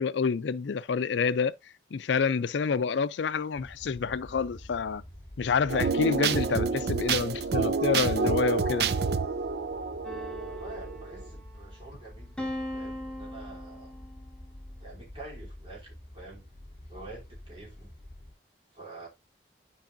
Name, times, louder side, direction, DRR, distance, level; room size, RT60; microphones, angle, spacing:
voice 1, 0.0-1.5 1.9-5.0 5.4-8.9, left 5 dB, 85° left, 0.4 m, -28 dB
sound 1, 3.5-18.3, left 1 dB, 40° left, 4.7 m, -47 dB
sound 2, 5.7-11.2, right 5 dB, 60° right, 0.5 m, -28 dB
sound 3, 10.0-11.7 12.4-14.3, equal, 5° left, 1.4 m, -39 dB
voice 2, 10.5-12.4 12.7-13.9 14.8-16.4 16.9-17.9 18.7-19.1, right 3 dB, 30° right, 3.0 m, -47 dB
12.0 x 4.7 x 2.5 m
head